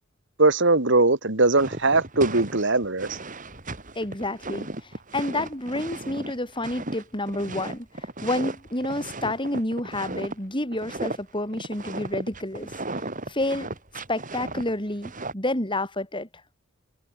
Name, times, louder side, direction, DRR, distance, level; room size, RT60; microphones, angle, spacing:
voice 1, 0.4-3.2, right 2 dB, 60° right, 2.4 m, -20 dB
sound 1, 1.6-10.3 10.7-11.2 11.5-15.3, right 2 dB, 40° right, 6.6 m, -35 dB
voice 2, 4.0-13.7 14.1-16.3, left 1 dB, 25° left, 7.6 m, -29 dB
head